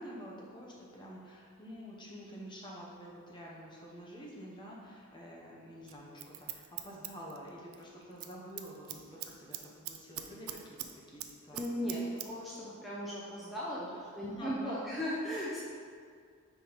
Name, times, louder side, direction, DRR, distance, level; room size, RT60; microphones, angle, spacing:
voice 1, 0.0-12.0 13.7-15.0, equal, 20° left, -3 dB, 0.9 m, -48 dB
Scissors, 5.9-7.8 8.1-8.3 8.6-10.9 11.2-12.3 12.6-12.7, right 12 dB, 70° right, 0.4 m, -42 dB
voice 2, 11.5-13.8 14.1-15.6, equal, ahead, -8 dB, 0.6 m, -37 dB
4.9 x 4.9 x 3.9 m, 2.1 s
head